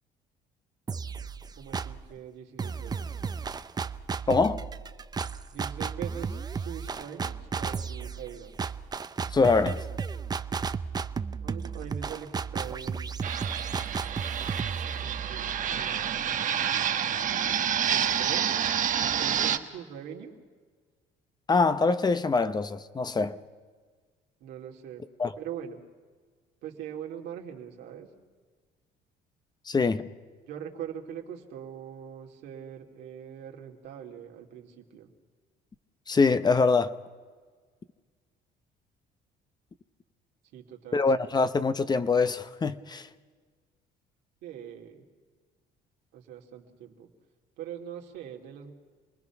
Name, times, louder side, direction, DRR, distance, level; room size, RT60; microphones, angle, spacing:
sound 1, 0.9-2.1 2.6-16.3, right 5 dB, 25° right, 0.6 m, -34 dB
voice 1, 1.5-3.1 5.5-8.6 11.4-13.2 15.0-16.2 17.9-20.3 24.4-25.1 25.4-25.8 26.6-28.1 30.5-35.1 40.5-41.3 44.4-45.0 46.1-47.1 47.6-48.7, right 9 dB, 80° right, 2.7 m, -42 dB
voice 2, 4.3-4.6 9.3-9.8 21.5-23.4 25.2-25.3 29.7-30.1 36.1-37.0 40.9-43.1, left 4 dB, 25° left, 0.8 m, -24 dB
Fixed-wing aircraft airplane, 13.2-19.6, right 9 dB, 50° right, 1.1 m, -28 dB
28.0 x 20.0 x 6.0 m
cardioid pair, 110°, 17 cm